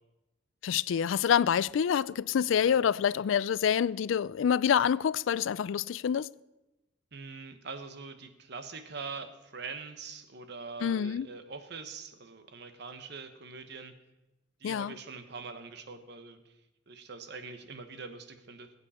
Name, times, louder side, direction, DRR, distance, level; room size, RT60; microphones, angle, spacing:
voice 1, 0.6-6.3 10.8-11.3 14.6-14.9, left 8 dB, 90° left, 0.3 m, -27 dB
voice 2, 7.1-13.9 14.6-16.5 16.9-18.7, right 4 dB, 60° right, 1.2 m, -43 dB
20.5 x 8.4 x 4.3 m
head